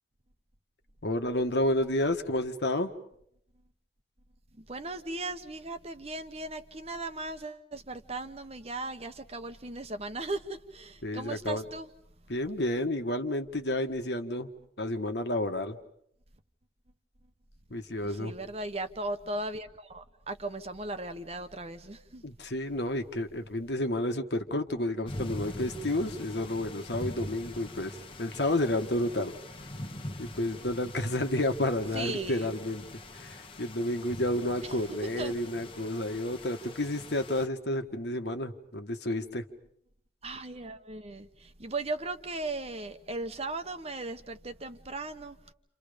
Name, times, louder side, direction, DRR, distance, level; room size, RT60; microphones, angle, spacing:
voice 1, 1.0-2.9 11.0-11.6 12.3-14.5 14.8-15.8 17.7-18.3 22.2-29.3 30.2-32.8 33.1-39.4, left 1 dB, 70° left, 6 dB, 1.7 m, -30 dB
voice 2, 4.6-11.9 18.2-22.2 31.9-32.5 35.0-35.3 40.2-45.4, right 2 dB, 35° right, 9 dB, 1.2 m, -37 dB
sound 1, 25.1-37.5, left 1 dB, 30° left, 1.3 m, -43 dB
29.5 x 28.0 x 5.3 m, 0.70 s
head